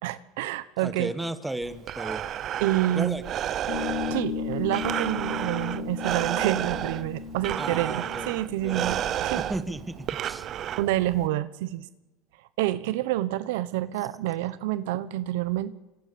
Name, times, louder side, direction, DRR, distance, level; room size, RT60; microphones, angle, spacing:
voice 1, 0.0-1.1 2.6-3.2 4.1-9.4 10.8-11.8 12.6-15.7, right 15 dB, 80° right, 15 dB, 1.1 m, -28 dB
voice 2, 0.8-2.2 2.9-3.2 7.6-8.4 8.6-9.0 9.3-10.5, right 1 dB, 5° right, 11 dB, 1.6 m, -34 dB
Breathing, 1.6-11.3, right 11 dB, 40° right, 0.8 m, -32 dB
sound 1, 3.7-10.6, left 7 dB, 65° left, 6.3 m, -36 dB
26.0 x 24.0 x 7.1 m, 1.1 s
supercardioid pair, 120°, 0 cm